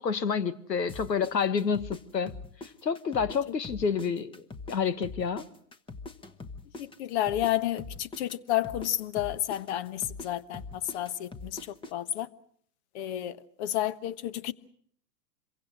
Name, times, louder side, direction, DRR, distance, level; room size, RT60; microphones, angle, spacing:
voice 1, 0.0-2.3 2.8-5.4, left 6 dB, 90° left, 1.7 m, -29 dB
sound 1, 0.9-3.4 3.6-7.5 7.8-11.9, left 3 dB, 10° left, 1.1 m, -42 dB
voice 2, 6.8-12.3 12.9-14.5, left 13 dB, 45° left, 1.3 m, -31 dB
27.0 x 23.0 x 6.2 m
hypercardioid pair, 120°, 49 cm